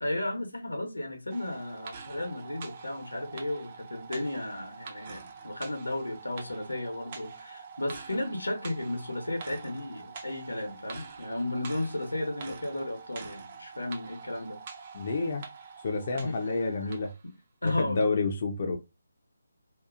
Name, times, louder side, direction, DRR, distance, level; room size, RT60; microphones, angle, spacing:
voice 1, 0.0-14.6 15.0-15.2 16.1-16.9 17.6-18.0, left 1 dB, 85° left, 0.9 m, -34 dB
sound 1, 1.3-17.2 17.7-17.8, right 5 dB, 35° right, 0.5 m, -45 dB
voice 2, 14.9-15.4 15.8-17.1 17.6-18.8, left 3 dB, 45° left, 0.5 m, -29 dB
2.7 x 2.3 x 2.4 m
figure-of-eight pair, 150°, 0 cm